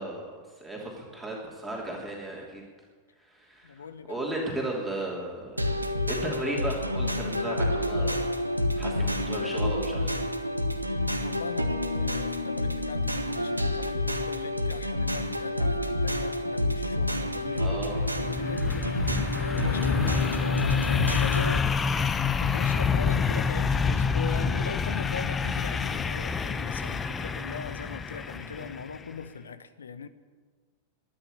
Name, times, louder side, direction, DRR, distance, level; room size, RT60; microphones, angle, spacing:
voice 1, 0.0-2.6 3.2-5.8 6.1-8.3 8.8-10.3 17.6-18.0, right 1 dB, 5° right, 3.1 m, -35 dB
voice 2, 3.6-4.3 11.2-19.4 19.7-21.6 22.2-30.1, left 6 dB, 70° left, 0.9 m, -39 dB
sound 1, 5.6-21.6, left 1 dB, 85° right, 1.2 m, -29 dB
sound 2, 17.4-29.0, left 5 dB, 20° left, 0.7 m, -28 dB
12.5 x 11.0 x 10.0 m
figure-of-eight pair, 90°, 0 cm